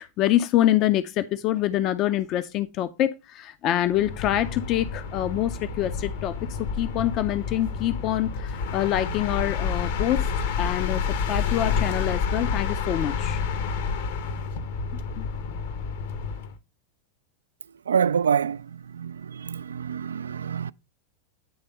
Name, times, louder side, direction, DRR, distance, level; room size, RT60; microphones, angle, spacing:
voice 1, 0.0-10.3 10.6-11.0 11.3-13.4 15.2-15.3, left 13 dB, 35° left, 0.5 m, -25 dB
sound 1, 3.9-16.6, left 6 dB, 55° left, 0.9 m, -29 dB
voice 2, 17.6-20.7, right 7 dB, 70° right, 0.3 m, -27 dB
9.4 x 3.4 x 5.5 m
figure-of-eight pair, 90°, 0 cm